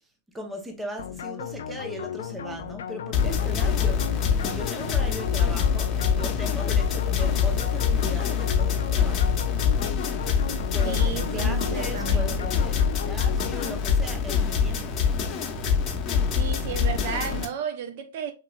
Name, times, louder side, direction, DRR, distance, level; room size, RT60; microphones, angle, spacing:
voice 1, 0.3-9.4 10.7-15.0, equal, 10° right, 0.7 m, -38 dB
sound 1, 1.0-14.3, left 8 dB, 70° left, 0.4 m, -36 dB
sound 2, 3.1-17.4, left 6 dB, 30° left, 0.9 m, -25 dB
voice 2, 10.8-12.5 16.3-18.3, right 8 dB, 55° right, 0.6 m, -33 dB
4.0 x 2.9 x 2.3 m
hypercardioid pair, 115°, 0 cm